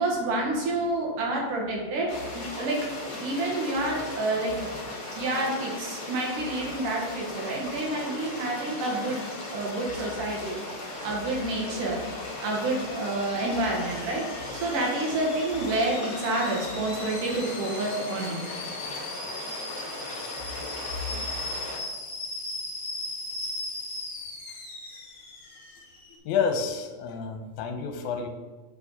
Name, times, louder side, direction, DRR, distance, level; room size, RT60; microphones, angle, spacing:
voice 1, 0.0-2.9 3.2-4.7 5.2-10.6 11.0-12.0 12.4-18.4, right 2 dB, 85° right, -2 dB, 3.1 m, -29 dB
sound 1, 2.1-21.8, left 2 dB, 40° left, 1.4 m, -37 dB
Alarm / Boiling, 11.3-26.1, left 2 dB, 55° left, 2.4 m, -39 dB
voice 2, 26.3-28.3, left 6 dB, 80° left, 5 dB, 2.1 m, -29 dB
8.3 x 4.7 x 4.2 m, 1.2 s
omnidirectional pair, 3.6 m